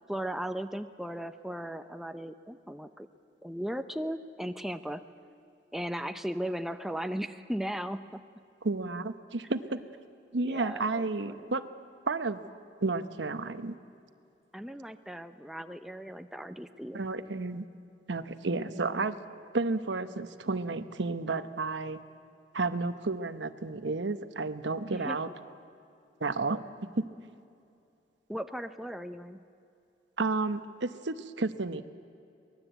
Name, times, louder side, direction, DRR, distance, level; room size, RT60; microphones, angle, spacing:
voice 1, 0.1-3.1 3.4-5.0 5.7-8.2 10.4-11.5 14.5-17.0 18.5-19.1 24.9-25.2 28.3-29.4, equal, ahead, 8 dB, 0.6 m, -37 dB
voice 2, 8.6-9.8 10.3-11.6 12.1-12.4 12.8-13.8 16.9-17.7 18.1-19.2 19.5-22.0 22.5-25.3 26.2-26.6 27.0-27.1 30.2-31.8, right 3 dB, 85° right, 11 dB, 1.0 m, -31 dB
23.5 x 20.0 x 8.1 m, 2.6 s
head